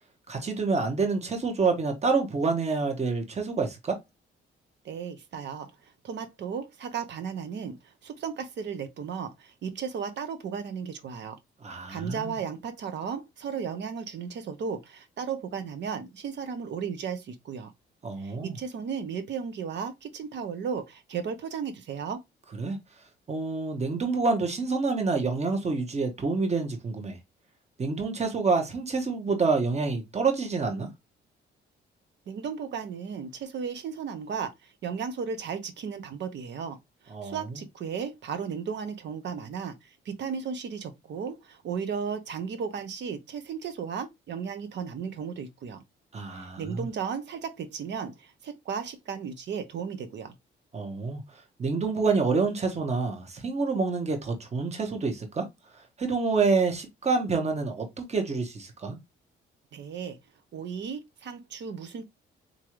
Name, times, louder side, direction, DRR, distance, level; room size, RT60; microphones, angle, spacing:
voice 1, 0.3-4.0 11.6-12.3 18.0-18.6 22.6-22.8 23.3-27.2 27.8-30.9 37.1-37.6 46.1-46.9 50.7-55.5 56.0-59.0, right 4 dB, 35° right, 1.2 m, -27 dB
voice 2, 4.8-11.4 11.9-17.7 18.2-22.2 32.3-36.8 37.0-45.8 46.3-50.3 59.7-60.2 60.5-62.0, right 6 dB, 65° right, 0.9 m, -35 dB
3.8 x 2.9 x 3.1 m
cardioid pair, 90°, 20 cm